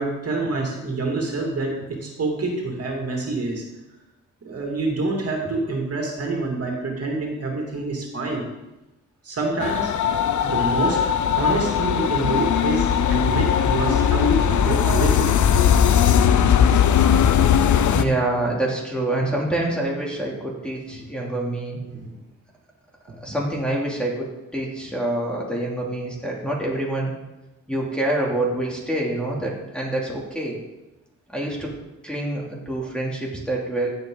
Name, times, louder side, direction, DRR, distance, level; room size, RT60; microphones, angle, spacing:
voice 1, 0.0-1.7 2.0-3.6 4.4-8.4 9.2-9.9 10.4-11.0 11.4-15.3 21.9-22.1, right 3 dB, 50° right, 0 dB, 2.9 m, -26 dB
sound 1, 9.6-18.0, left 8 dB, 70° left, 0.8 m, -19 dB
voice 2, 17.9-21.8 23.2-27.1 27.7-30.6 31.3-31.7 32.0-33.9, right 1 dB, 5° left, -3 dB, 3.0 m, -26 dB
15.5 x 7.9 x 4.0 m, 0.99 s
cardioid pair, 100°, 30 cm